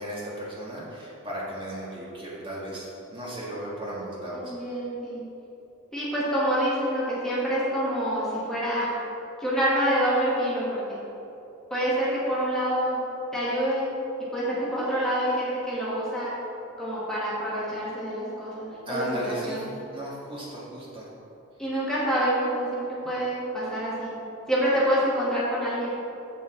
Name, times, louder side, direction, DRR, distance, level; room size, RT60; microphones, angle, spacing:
voice 1, 0.0-4.5 18.8-19.6 19.9-21.0, right 1 dB, 25° right, -6 dB, 1.7 m, -35 dB
voice 2, 4.3-5.2 5.9-8.9 9.4-11.0 11.7-13.0 13.3-13.9 14.3-16.3 16.8-19.7 21.6-24.1 24.5-25.9, equal, 5° left, -9 dB, 1.5 m, -27 dB
8.0 x 7.0 x 3.7 m, 3.0 s
head